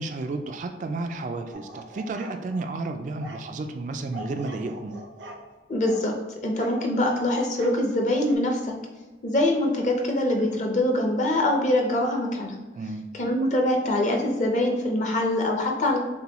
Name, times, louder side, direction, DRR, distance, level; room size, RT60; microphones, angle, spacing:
voice 1, 0.0-5.0 12.8-13.1, right 3 dB, 45° right, 6 dB, 0.3 m, -32 dB
sound 1, 1.5-2.7 3.2-3.4 4.1-5.4 5.8-6.1 6.6-7.8 8.3-8.4, right 1 dB, 90° right, 0.7 m, -42 dB
voice 2, 5.7-6.1 6.4-8.7 9.2-12.6 13.2-16.0, left 1 dB, 40° left, 1 dB, 0.7 m, -24 dB
6.7 x 2.2 x 2.9 m, 1.2 s
head